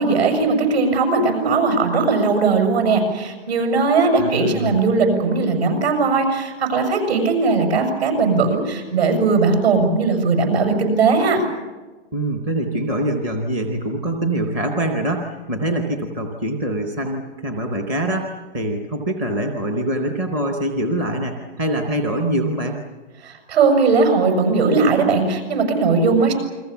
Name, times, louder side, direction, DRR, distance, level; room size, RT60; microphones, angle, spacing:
voice 1, 0.0-11.4 23.2-26.3, right 4 dB, 60° right, 5 dB, 7.5 m, -18 dB
voice 2, 4.0-4.8 12.1-22.8, right 1 dB, 10° right, 3 dB, 0.7 m, -24 dB
29.0 x 22.5 x 7.0 m, 1.2 s
hypercardioid pair, 175°, 36 cm